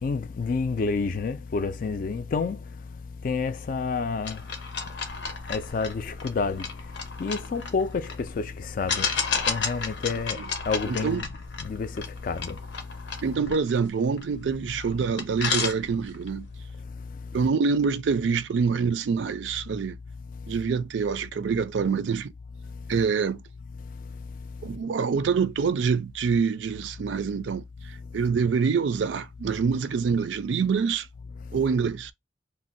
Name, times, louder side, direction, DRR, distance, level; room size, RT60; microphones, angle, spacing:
voice 1, 0.0-2.6 3.2-4.4 5.5-6.7 7.2-9.1 9.4-10.4 10.7-11.3 11.6-12.6, left 4 dB, 45° left, 0.3 m, -29 dB
sound 1, 4.2-8.2 8.9-14.5 14.9-15.0 15.2-16.3, left 5 dB, 80° left, 0.7 m, -32 dB
voice 2, 10.8-11.2 13.2-16.5 17.3-20.0 20.5-22.3 22.9-23.4 24.6-27.6 28.1-31.1 31.5-32.1, right 5 dB, 75° right, 0.4 m, -25 dB
2.5 x 2.0 x 3.9 m
head